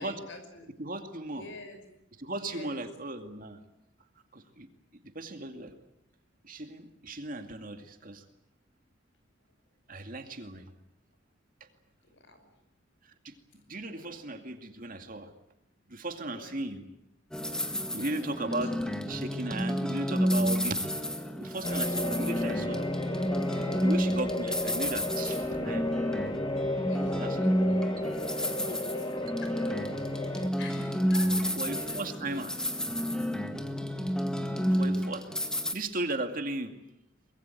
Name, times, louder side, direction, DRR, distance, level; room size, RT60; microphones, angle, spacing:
voice 1, 0.0-0.7 1.3-1.8 2.3-2.8 12.0-12.5 13.9-14.1 16.3-16.6 18.1-18.7 26.7-28.0 28.3-29.6 30.4-32.4 35.2-35.5, left 2 dB, 60° left, 8 dB, 5.7 m, -48 dB
voice 2, 0.8-1.5 2.2-3.6 4.3-4.7 5.1-5.7 6.4-8.2 9.9-10.7 13.2-13.3 13.7-15.3 15.9-16.8 17.9-20.8 21.4-22.9 23.8-25.9 27.2-27.3 31.6-32.5 34.7-35.3 35.7-36.7, right 2 dB, 45° right, 6 dB, 2.4 m, -36 dB
sound 1, 17.3-35.7, equal, 5° left, 1.9 m, -30 dB
sound 2, 21.6-30.5, left 1 dB, 25° left, 1.8 m, -34 dB
24.5 x 21.5 x 9.2 m, 0.83 s
head